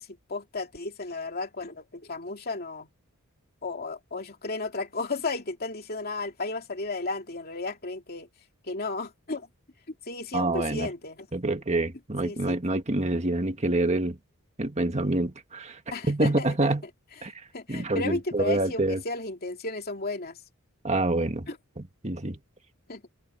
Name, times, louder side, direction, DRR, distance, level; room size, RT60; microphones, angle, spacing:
voice 1, 0.0-2.9 3.6-8.3 8.6-9.5 10.0-11.3 12.2-12.6 15.9-16.7 17.5-20.4 21.5-21.6 22.9-23.0, left 3 dB, 45° left, 2.7 m, -34 dB
voice 2, 10.3-10.9 11.3-14.2 14.6-15.8 16.1-16.8 17.2-17.3 17.7-19.0 20.8-21.5 21.8-22.4, right 2 dB, 30° right, 1.8 m, -26 dB
head